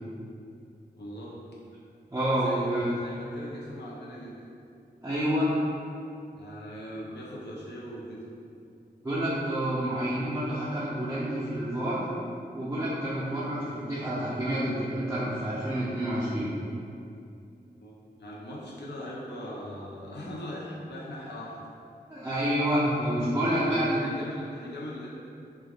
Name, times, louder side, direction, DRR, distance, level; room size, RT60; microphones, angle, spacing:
voice 1, 1.0-1.4 2.4-4.3 6.3-8.2 17.8-17.9 18.2-21.6 23.4-25.1, equal, 80° left, -5 dB, 0.6 m, -40 dB
voice 2, 2.1-2.9 5.0-5.5 9.0-12.1 12.5-16.5 22.1-24.0, equal, 15° right, -11 dB, 0.5 m, -28 dB
3.2 x 2.3 x 2.3 m, 2.5 s
cardioid pair, 55°, 17 cm